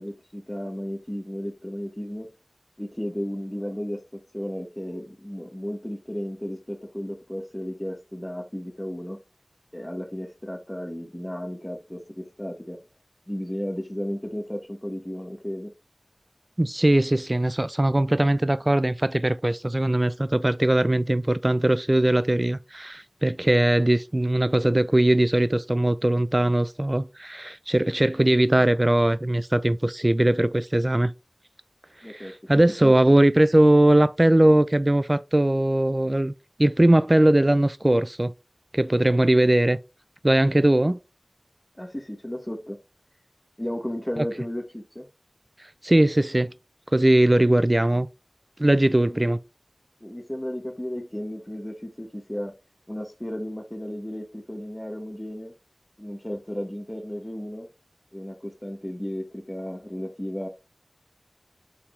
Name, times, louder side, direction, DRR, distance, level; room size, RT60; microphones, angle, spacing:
voice 1, 0.0-2.3 2.8-4.0 4.3-9.2 9.7-12.8 13.3-15.7 32.0-32.3 32.8-33.0 41.8-42.8 43.6-45.1 49.0-49.3 50.0-52.5 52.9-55.5 56.0-57.7 58.1-60.5, equal, 20° left, 1.0 m, -34 dB
voice 2, 16.6-31.1 32.1-36.3 36.6-38.3 38.7-39.8 40.2-41.0 44.2-44.3 45.8-46.5 46.9-48.1 48.6-49.4, right 1 dB, 35° right, 0.3 m, -20 dB
4.2 x 4.0 x 3.1 m
wide cardioid pair, 45°, 0 cm